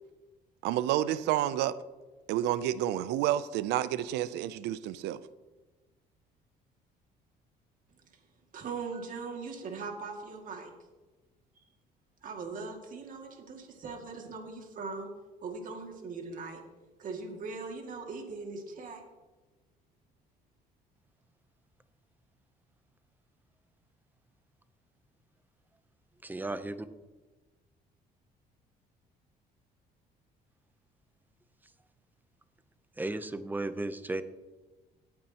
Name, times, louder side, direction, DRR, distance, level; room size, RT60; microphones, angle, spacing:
voice 1, 0.6-1.8 2.3-5.2, right 12 dB, 90° right, 0.6 m, -29 dB
voice 2, 8.5-10.7 12.2-15.1 15.4-16.6 17.0-19.0, right 4 dB, 50° right, 2.3 m, -40 dB
voice 3, 26.2-26.9 33.0-34.2, right 2 dB, 10° right, 0.7 m, -34 dB
18.0 x 8.7 x 2.9 m
cardioid pair, 110°, 17 cm